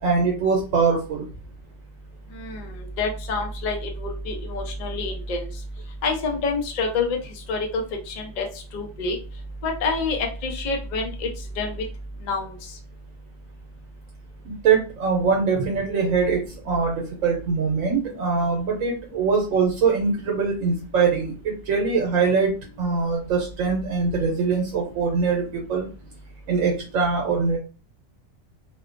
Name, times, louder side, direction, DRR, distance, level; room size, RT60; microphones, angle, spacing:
voice 1, 0.0-1.3 14.4-25.9 26.5-27.6, right 5 dB, 90° right, 0 dB, 1.0 m, -23 dB
voice 2, 2.3-5.5 6.0-7.2 7.5-7.8 8.1-8.5 8.7-9.2 9.6-11.3 11.6-11.8 12.3-12.5, left 3 dB, 50° left, 2 dB, 0.5 m, -27 dB
2.7 x 2.1 x 2.5 m, 0.35 s
omnidirectional pair, 1.4 m